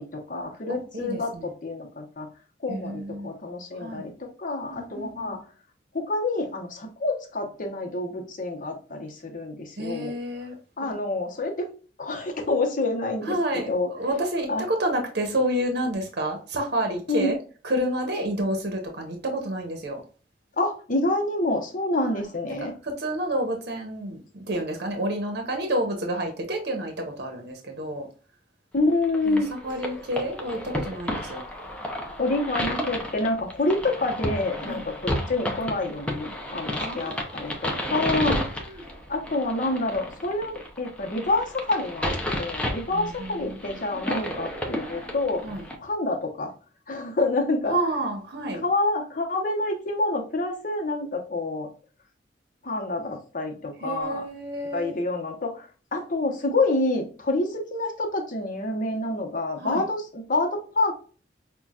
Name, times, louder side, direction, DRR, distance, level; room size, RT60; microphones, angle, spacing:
voice 1, 0.0-2.3 2.6-5.4 5.9-10.1 10.8-11.7 12.0-13.9 14.5-14.6 17.1-17.3 20.6-22.7 28.7-29.5 32.2-38.6 39.1-45.4 45.8-46.5 46.9-47.9 48.6-51.7 52.6-54.2 54.7-60.9, left 2 dB, 50° left, 3 dB, 0.9 m, -27 dB
voice 2, 0.7-1.5 2.7-3.3 3.8-4.1 4.7-5.4 9.8-10.5 10.8-10.9 13.2-17.4 17.6-20.0 22.0-28.1 29.2-31.4 34.6-34.9 36.8-38.0 38.5-38.9 42.9-43.6 44.1-44.4 45.4-45.7 47.7-48.6 53.8-55.0 59.6-59.8, right 1 dB, 65° right, 3 dB, 0.8 m, -30 dB
sound 1, 29.0-45.8, equal, 5° left, 0.7 m, -32 dB
5.7 x 2.3 x 2.4 m, 0.38 s
head